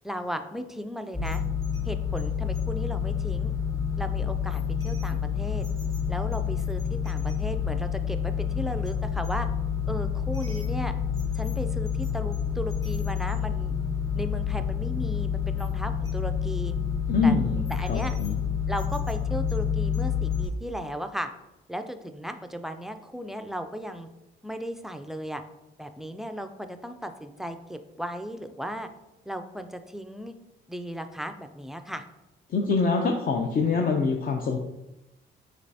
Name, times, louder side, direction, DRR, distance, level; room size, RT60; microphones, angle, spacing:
voice 1, 0.0-1.4 1.9-3.5 4.0-5.7 6.1-9.5 9.9-10.9 11.3-13.8 14.1-16.7 17.2-17.4 17.7-18.1 18.7-21.3 21.7-24.1 24.4-25.4 25.8-28.9 29.3-30.3 30.7-32.0, equal, ahead, 8 dB, 0.3 m, -36 dB
sound 1, 1.1-20.5, left 7 dB, 15° left, 1.1 m, -28 dB
voice 2, 17.1-18.4 32.5-34.6, left 4 dB, 45° left, 2 dB, 0.5 m, -25 dB
5.2 x 3.3 x 2.7 m, 0.97 s
cardioid pair, 90°, 20 cm